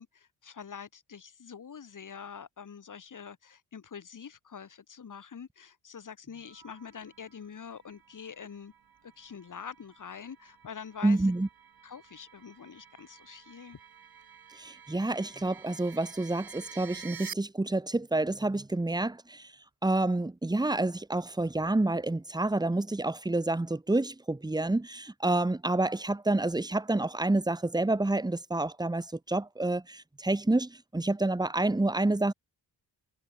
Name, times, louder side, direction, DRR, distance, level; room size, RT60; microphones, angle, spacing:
voice 1, 0.0-8.7 9.0-11.3 11.8-13.8, left 7 dB, 50° left, 2.9 m, -45 dB
sound 1, 6.4-17.3, right 7 dB, 60° right, 7.0 m, -51 dB
voice 2, 11.0-11.5 14.6-19.5 19.8-32.3, right 2 dB, 10° right, 1.2 m, -28 dB
wide cardioid pair, 115°, 41 cm